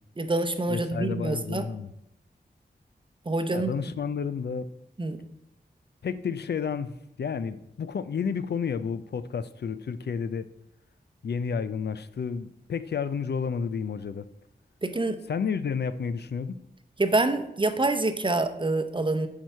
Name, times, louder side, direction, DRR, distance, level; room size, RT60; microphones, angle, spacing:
voice 1, 0.2-1.7 3.3-3.7 5.0-5.2 14.8-15.2 17.0-19.3, right 2 dB, 30° right, 0.7 m, -26 dB
voice 2, 0.7-1.9 3.5-4.7 6.0-10.5 11.2-14.3 15.3-16.6, left 6 dB, 75° left, 0.4 m, -31 dB
8.9 x 4.7 x 5.6 m
wide cardioid pair, 85°, 17 cm